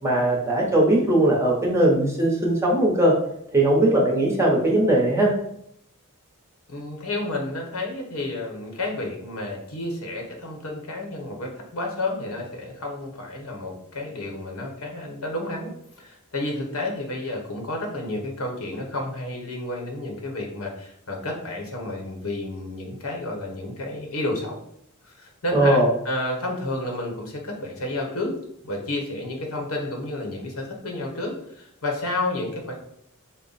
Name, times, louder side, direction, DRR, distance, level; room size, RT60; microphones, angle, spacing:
voice 1, 0.0-3.1 3.5-5.3 25.5-25.9, right 1 dB, 15° right, -3 dB, 0.9 m, -19 dB
voice 2, 6.7-15.7 16.0-24.5 25.0-25.8 26.0-28.4 28.6-32.7, left 2 dB, 90° left, 1 dB, 1.2 m, -31 dB
5.4 x 2.1 x 4.1 m, 0.73 s
head